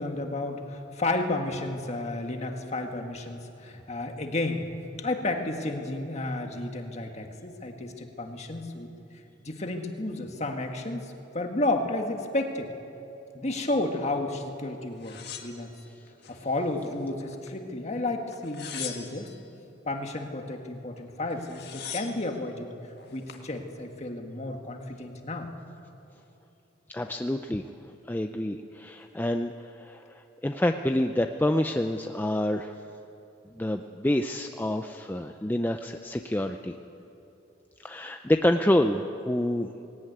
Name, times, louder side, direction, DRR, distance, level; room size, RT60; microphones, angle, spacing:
voice 1, 0.0-4.6 5.0-8.9 9.4-12.7 13.3-15.7 16.3-19.3 19.8-22.7 23.1-25.5, left 2 dB, 35° left, 4 dB, 1.6 m, -32 dB
sound 1, 15.0-16.4 16.8-17.6 18.3-19.4 21.0-21.1 21.3-22.3 23.0-23.5, left 9 dB, 55° left, 1.7 m, -41 dB
voice 2, 26.9-27.6 28.1-30.0 30.4-32.7 33.6-36.7 37.8-39.7, left 1 dB, 10° left, 6 dB, 0.5 m, -27 dB
19.0 x 17.5 x 9.3 m, 2.8 s
head